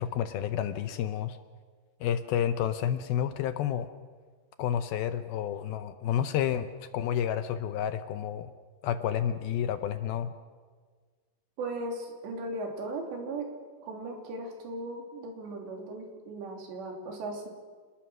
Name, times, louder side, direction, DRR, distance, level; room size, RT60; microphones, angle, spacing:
voice 1, 0.0-1.4 2.0-3.9 4.6-6.7 6.9-8.5 8.8-10.3, left 9 dB, 75° left, 10 dB, 2.4 m, -30 dB
voice 2, 11.6-13.5 13.8-17.5, right 2 dB, 90° right, 2 dB, 5.4 m, -37 dB
28.0 x 20.0 x 6.3 m, 1.5 s
omnidirectional pair, 4.9 m